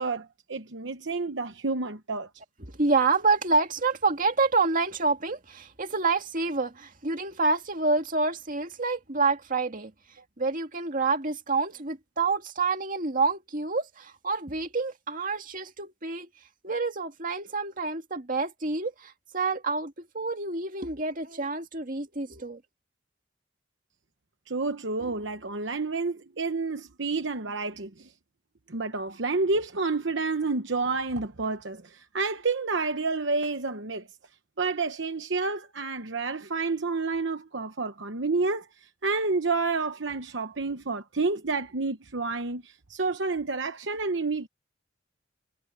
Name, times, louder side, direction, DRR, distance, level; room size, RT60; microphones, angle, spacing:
voice 1, 0.0-2.3 24.5-28.1 28.7-34.1 34.6-44.5, right 3 dB, 70° right, 1.0 m, -29 dB
voice 2, 2.8-9.9 10.4-16.3 16.6-22.6, right 3 dB, 45° right, 2.2 m, -28 dB
head